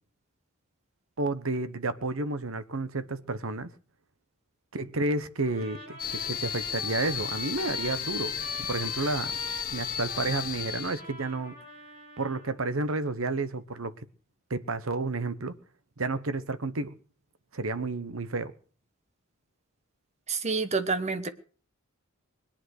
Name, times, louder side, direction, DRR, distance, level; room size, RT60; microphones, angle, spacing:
voice 1, 1.2-3.7 4.7-9.4 9.7-11.5 12.2-14.0 14.5-15.6 16.0-16.9 17.5-18.5, right 2 dB, 70° right, 1.1 m, -31 dB
Trumpet, 5.4-12.6, right 2 dB, 45° right, 5.3 m, -44 dB
sound 1, 6.0-11.0, left 9 dB, 40° left, 0.9 m, -34 dB
voice 2, 20.3-21.3, right 4 dB, 30° right, 1.2 m, -28 dB
21.5 x 8.9 x 6.5 m
head